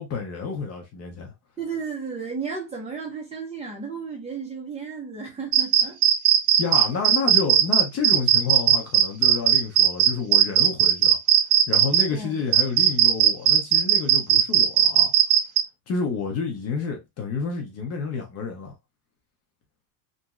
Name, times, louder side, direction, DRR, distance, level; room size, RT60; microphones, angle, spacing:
voice 1, 0.0-1.3 6.6-11.2 11.7-15.1 15.9-18.7, left 5 dB, 35° left, 0.8 m, -29 dB
voice 2, 1.6-6.0 12.1-12.3, right 5 dB, 15° right, 0.9 m, -33 dB
sound 1, 5.5-12.0 12.5-15.6, right 10 dB, 80° right, 0.8 m, -17 dB
3.1 x 2.6 x 2.3 m
cardioid pair, 150°, 45 cm